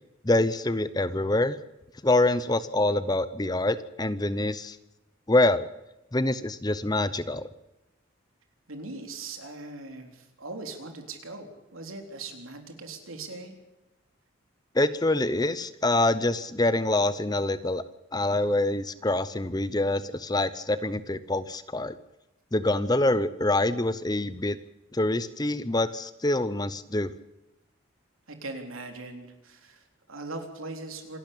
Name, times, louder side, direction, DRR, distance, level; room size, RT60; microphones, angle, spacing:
voice 1, 0.2-1.6 2.0-4.8 5.3-5.7 6.1-7.5 14.7-17.8 18.1-21.9 22.5-24.6 24.9-27.1, left 2 dB, 20° left, 14 dB, 0.7 m, -25 dB
voice 2, 8.7-13.5 28.3-31.2, right 3 dB, 85° right, 4 dB, 3.7 m, -40 dB
27.0 x 12.0 x 8.5 m, 0.94 s
head